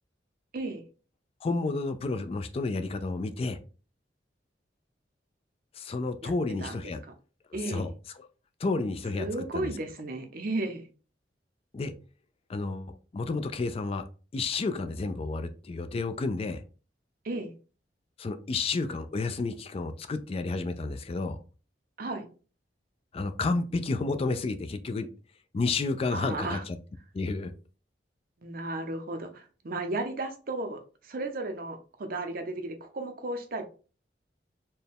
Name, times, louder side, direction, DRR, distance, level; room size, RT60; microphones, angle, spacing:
voice 1, 0.5-0.8 6.2-6.3 6.6-6.8 7.5-7.9 9.2-10.9 17.2-17.5 22.0-22.3 26.1-26.6 28.4-33.7, right 2 dB, 55° right, 0.6 m, -34 dB
voice 2, 1.4-3.6 5.7-7.0 7.6-7.9 8.2-8.3 8.6-9.7 11.7-11.9 12.5-14.0 14.3-16.6 18.2-21.4 23.1-25.1 25.5-26.8 27.1-27.5, left 3 dB, 35° left, 0.3 m, -31 dB
4.3 x 2.2 x 3.4 m
head